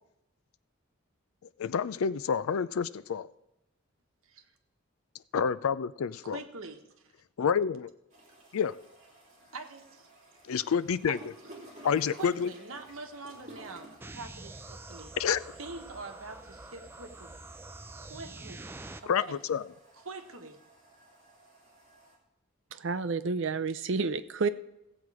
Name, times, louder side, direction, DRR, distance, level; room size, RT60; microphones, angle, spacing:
voice 1, 1.6-3.3 5.3-6.4 7.4-7.9 8.5-8.8 10.4-11.2 11.8-12.5 15.2-15.4 19.1-19.6, left 7 dB, 80° left, 0.4 m, -28 dB
voice 2, 6.2-7.1 9.5-10.1 11.0-11.2 12.1-15.2 15.6-17.4 18.0-18.7 19.0-19.4 20.0-20.6, right 3 dB, 75° right, 1.2 m, -44 dB
sound 1, 8.1-22.2, right 1 dB, 35° right, 2.8 m, -55 dB
sound 2, 14.0-19.0, right 2 dB, 10° right, 0.4 m, -46 dB
voice 3, 22.7-24.5, right 4 dB, 60° right, 0.5 m, -30 dB
16.0 x 7.9 x 4.8 m
head